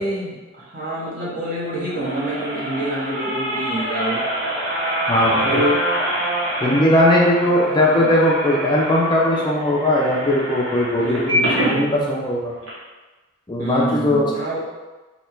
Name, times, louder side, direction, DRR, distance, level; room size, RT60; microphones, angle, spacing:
voice 1, 0.0-4.3 5.3-5.8 7.6-8.1 11.0-12.0 13.6-14.6, right 1 dB, 40° right, -7 dB, 1.2 m, -27 dB
sound 1, 1.6-11.8 12.3-12.4 12.6-12.7, right 1 dB, 70° right, 1.1 m, -25 dB
voice 2, 5.1-5.5 6.6-12.5 13.5-14.3, left 1 dB, 20° left, -3 dB, 0.5 m, -19 dB
3.3 x 2.8 x 4.5 m, 1.2 s
head